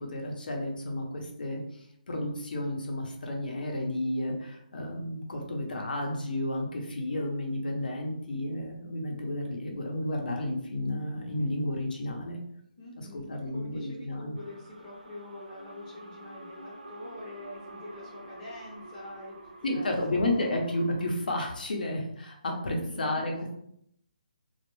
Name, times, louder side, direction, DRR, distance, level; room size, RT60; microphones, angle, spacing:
voice 1, 0.0-12.4 13.0-14.4 19.6-23.6, left 1 dB, 75° left, 1 dB, 0.7 m, -32 dB
voice 2, 12.8-19.9 22.7-23.1, left 1 dB, 20° left, -8 dB, 0.7 m, -45 dB
sound 1, 14.3-21.1, right 2 dB, 65° right, 0.7 m, -48 dB
2.3 x 2.1 x 3.1 m, 0.73 s
hypercardioid pair, 160°, 5 cm